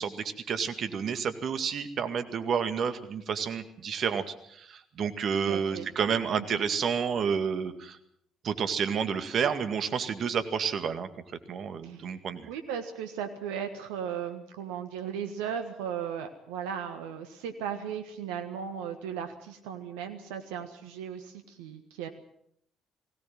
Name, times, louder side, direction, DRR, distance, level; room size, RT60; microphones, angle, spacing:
voice 1, 0.0-8.0 8.4-11.1 11.5-12.5, right 6 dB, 55° right, 9 dB, 2.1 m, -30 dB
voice 2, 5.5-5.9 6.4-6.6 11.8-12.1 12.5-22.1, right 8 dB, 80° right, 7 dB, 1.4 m, -36 dB
21.0 x 17.5 x 7.6 m, 0.69 s
hypercardioid pair, 50°, 0 cm